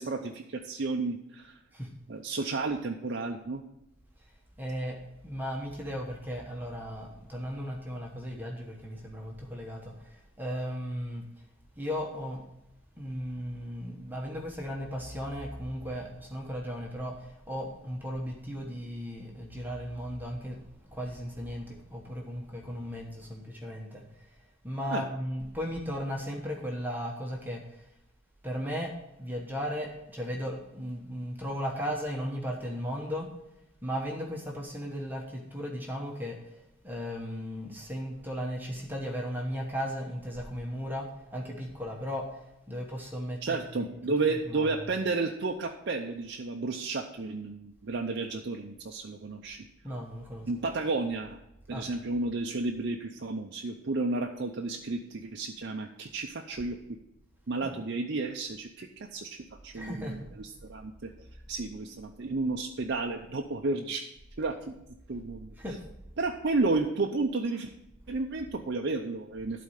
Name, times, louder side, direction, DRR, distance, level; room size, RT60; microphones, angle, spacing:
voice 1, 0.0-1.6 2.1-3.6 24.9-25.0 43.4-49.7 50.5-51.4 51.7-56.8 57.5-59.4 59.6-61.1 61.5-64.1 64.4-64.7 65.1-65.5 66.2-67.7 68.1-69.6, right 3 dB, 55° right, 2 dB, 0.6 m, -32 dB
voice 2, 4.2-11.2 11.7-12.5 13.0-27.9 28.4-28.9 29.2-33.3 33.8-43.9 44.3-44.8 49.8-50.5 51.7-51.9 57.6-57.7 59.7-60.3 65.6-65.8, equal, 10° right, 0 dB, 1.1 m, -36 dB
12.0 x 4.3 x 6.4 m, 0.86 s
head